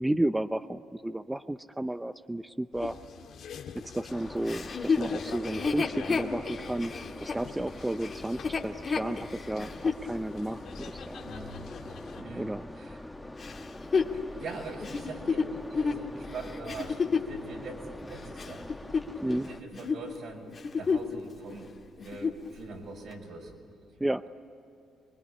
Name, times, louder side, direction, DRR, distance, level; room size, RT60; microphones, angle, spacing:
voice 1, 0.0-3.0 3.8-6.9 7.2-11.2 12.4-12.7 19.2-19.5 24.0-24.2, right 1 dB, 10° right, 11 dB, 0.6 m, -32 dB
sound 1, 2.7-12.2, left 7 dB, 70° left, 1.7 m, -45 dB
sound 2, 4.1-19.6, left 1 dB, 10° left, 1.2 m, -44 dB
Chuckle chortle, 4.5-10.0 10.6-10.7 13.4-17.4 18.0-19.5 19.7-20.0 20.5-21.2 21.5-21.6 22.0-22.5 23.1-23.2, left 5 dB, 40° left, 2.1 m, -31 dB
voice 2, 11.2-11.6 12.2-12.5 12.7-13.0 13.9-18.7 19.5-21.7 22.0-23.5, right 3 dB, 70° right, 1 dB, 5.8 m, -43 dB
24.5 x 21.5 x 9.9 m, 2.7 s
cardioid pair, 90°, 0 cm